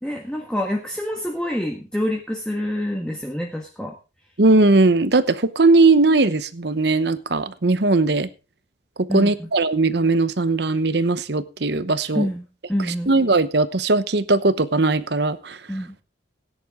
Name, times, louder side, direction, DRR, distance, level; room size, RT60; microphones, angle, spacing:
voice 1, 0.0-3.9 9.1-9.5 12.1-13.1 15.7-16.0, left 1 dB, 5° left, 0 dB, 1.5 m, -27 dB
voice 2, 4.4-8.3 9.1-12.3 13.1-15.6, right 3 dB, 60° right, 14 dB, 0.9 m, -19 dB
16.5 x 10.0 x 3.7 m, 0.32 s
head